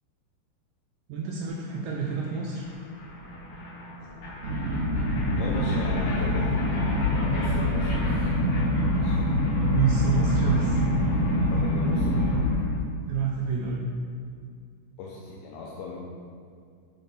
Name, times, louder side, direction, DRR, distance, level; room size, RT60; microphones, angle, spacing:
voice 1, 1.1-2.7 9.6-10.8 11.4-11.6 13.1-13.9, right 6 dB, 80° right, -2 dB, 2.7 m, -28 dB
sound 1, 1.6-1.7 1.9-12.8, equal, 55° left, 2.7 m, -33 dB
sound 2, 4.4-12.5, left 1 dB, 65° right, 3.4 m, -25 dB
voice 2, 5.3-8.3 9.0-9.3 11.1-11.2 11.5-12.4 15.0-16.0, left 3 dB, 85° left, -3 dB, 2.7 m, -38 dB
7.9 x 4.3 x 3.3 m, 2.2 s
omnidirectional pair, 5.3 m